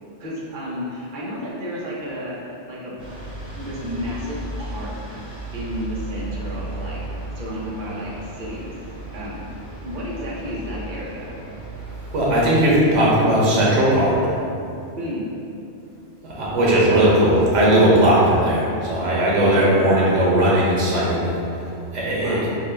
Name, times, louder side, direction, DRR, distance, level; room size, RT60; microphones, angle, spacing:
voice 1, 0.2-2.9 3.5-5.2 5.5-7.0 7.3-8.7 9.1-9.5 9.8-11.4 15.0-15.4 19.4-19.8 22.2-22.5, equal, 50° right, -6 dB, 0.8 m, -32 dB
sound 1, 3.0-12.3, right 1 dB, 5° right, 0.8 m, -35 dB
voice 2, 12.1-14.2 16.2-21.3 21.9-22.4, right 1 dB, 85° right, -5 dB, 1.1 m, -17 dB
3.6 x 2.2 x 3.2 m, 2.7 s
omnidirectional pair, 1.2 m